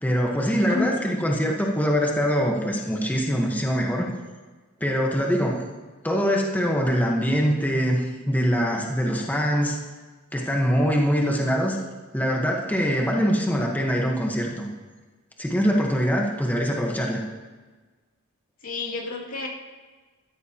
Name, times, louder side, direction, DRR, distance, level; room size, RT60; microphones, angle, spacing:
voice 1, 0.0-4.1 4.8-5.6 6.0-9.8 10.3-11.8 12.1-14.7 15.4-17.2, equal, 10° left, -1 dB, 1.2 m, -23 dB
voice 2, 0.5-0.9 18.6-19.5, left 4 dB, 80° left, -3 dB, 2.6 m, -30 dB
14.5 x 13.5 x 2.9 m, 1.3 s
head